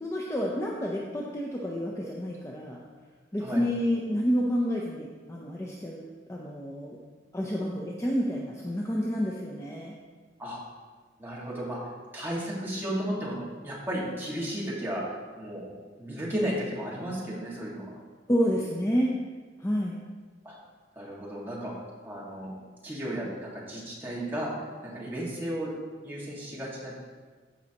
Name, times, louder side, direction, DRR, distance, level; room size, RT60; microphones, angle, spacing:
voice 1, 0.0-2.8 3.3-6.0 6.3-7.0 7.3-10.0 18.3-19.2 19.6-20.0, equal, 15° left, -2 dB, 0.6 m, -29 dB
voice 2, 11.2-11.8 12.1-13.4 13.6-15.0 15.4-15.7 16.0-17.9 20.4-20.6 21.0-21.7 22.0-22.5 22.8-24.5 24.8-25.7 26.0-27.0, equal, 10° right, -6 dB, 1.9 m, -34 dB
14.5 x 5.5 x 2.9 m, 1.5 s
head